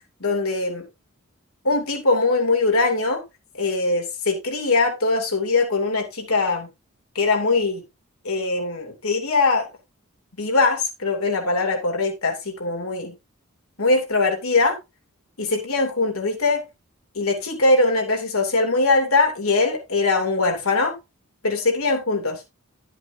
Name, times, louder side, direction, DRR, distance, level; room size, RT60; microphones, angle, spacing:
voice 1, 0.2-0.8 1.6-3.2 3.6-6.7 7.1-7.8 8.2-9.7 10.4-13.1 13.8-14.7 15.4-16.6 17.1-20.9 21.4-22.4, left 3 dB, 85° left, 2 dB, 2.8 m, -21 dB
12.0 x 7.8 x 2.7 m, 0.24 s
head